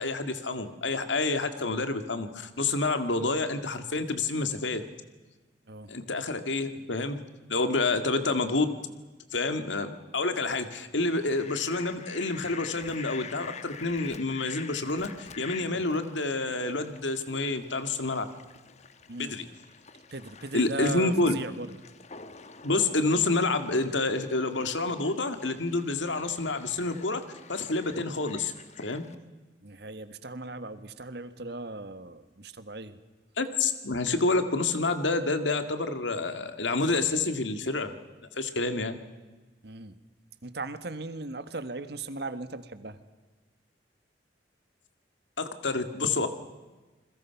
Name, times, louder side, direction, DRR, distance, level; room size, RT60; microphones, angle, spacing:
voice 1, 0.0-4.8 5.9-7.2 7.5-8.7 9.3-18.3 19.2-19.5 20.5-21.4 22.6-27.2 27.5-28.5 28.8-29.0 33.4-37.9 38.4-39.0 45.4-46.3, left 3 dB, 90° left, 9 dB, 2.0 m, -28 dB
Fowl, 11.0-29.1, left 6 dB, 40° left, 1.2 m, -48 dB
voice 2, 20.1-21.7 29.6-33.0 39.6-40.0 40.4-43.0, right 2 dB, 60° right, 11 dB, 1.5 m, -38 dB
29.0 x 21.5 x 5.9 m, 1.2 s
head